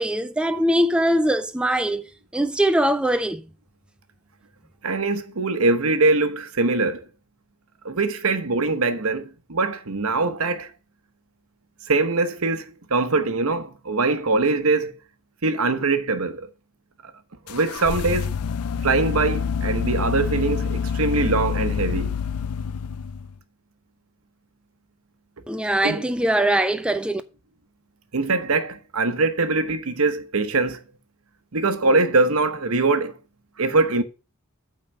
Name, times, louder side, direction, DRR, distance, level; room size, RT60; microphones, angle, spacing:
voice 1, 0.0-2.0 2.3-3.4 25.5-27.2, right 1 dB, 5° right, 0.4 m, -21 dB
voice 2, 4.8-7.0 7.8-10.7 11.9-14.9 15.4-16.5 17.0-17.1 17.5-18.4 18.8-22.2 25.8-26.1 26.4-26.5 28.1-30.8 31.5-33.1 33.6-34.0, right 3 dB, 70° right, 1.0 m, -22 dB
sound 1, 17.5-23.4, left 6 dB, 85° left, 0.4 m, -27 dB
8.8 x 4.1 x 6.5 m
head